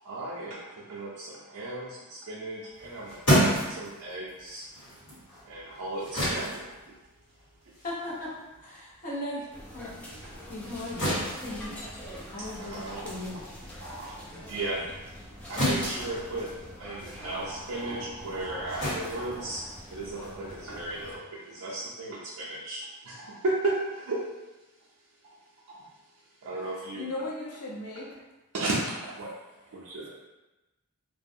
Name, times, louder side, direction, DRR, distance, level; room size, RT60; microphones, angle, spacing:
voice 1, 0.0-4.7 5.4-7.0 10.2-10.3 12.5-13.1 13.8-14.1 14.4-14.9 15.5-16.5 16.8-24.3 25.7-25.9 26.4-27.1 28.5-29.3 29.7-30.1, right 2 dB, 70° right, -6 dB, 0.4 m, -35 dB
sound 1, 2.7-9.5 9.9-20.1, equal, 60° left, 1.3 m, -32 dB
voice 2, 7.8-8.3 8.6-9.5 9.7-12.0 12.3-13.6 14.3-14.4, left 1 dB, 35° left, -6 dB, 0.7 m, -38 dB
sound 2, 9.5-21.2, equal, 5° left, 0.4 m, -44 dB
voice 3, 26.9-28.2, left 2 dB, 85° left, -3 dB, 0.6 m, -36 dB
2.3 x 2.1 x 2.6 m, 1.1 s
head